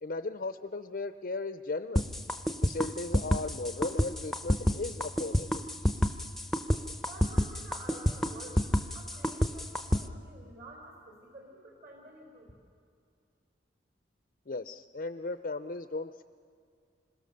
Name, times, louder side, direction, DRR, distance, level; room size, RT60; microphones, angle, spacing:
voice 1, 0.0-2.1 2.6-5.6 14.5-16.2, left 3 dB, 50° left, 10 dB, 0.6 m, -36 dB
sound 1, 2.0-10.0, left 1 dB, ahead, 0.7 m, -28 dB
voice 2, 7.0-8.7 8.9-12.5, right 1 dB, 50° right, -1 dB, 4.3 m, -50 dB
27.0 x 22.5 x 6.7 m, 2.3 s
head